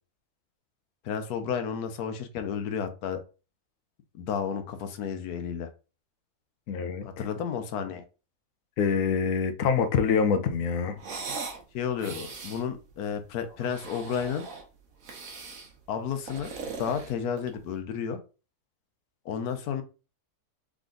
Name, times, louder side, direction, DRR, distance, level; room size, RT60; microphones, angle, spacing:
voice 1, 1.0-3.2 4.1-5.7 7.0-8.0 11.7-12.2 12.4-14.4 15.9-16.5 16.8-18.2 19.2-19.8, left 7 dB, 90° left, 1.2 m, -32 dB
voice 2, 6.7-7.2 8.8-11.0 12.0-12.3, left 6 dB, 65° left, 1.0 m, -26 dB
sound 1, 11.0-11.6 12.0-12.6 13.5-14.7 15.0-15.7 16.1-17.6, right 4 dB, 65° right, 1.4 m, -39 dB
3.7 x 3.5 x 3.8 m
omnidirectional pair, 1.6 m